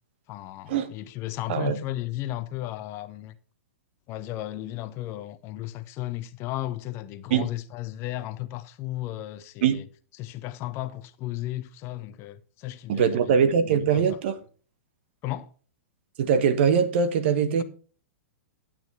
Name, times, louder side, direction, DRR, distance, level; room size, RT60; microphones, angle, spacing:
voice 1, 0.3-3.3 4.1-9.8 10.2-13.4 13.7-14.1 15.2-15.5, left 15 dB, 35° left, 1.0 m, -34 dB
voice 2, 1.5-1.8 7.3-7.5 9.6-9.8 12.9-14.4 16.2-17.6, right 7 dB, 50° right, 1.4 m, -22 dB
12.0 x 8.9 x 3.4 m
figure-of-eight pair, 105°, 7 cm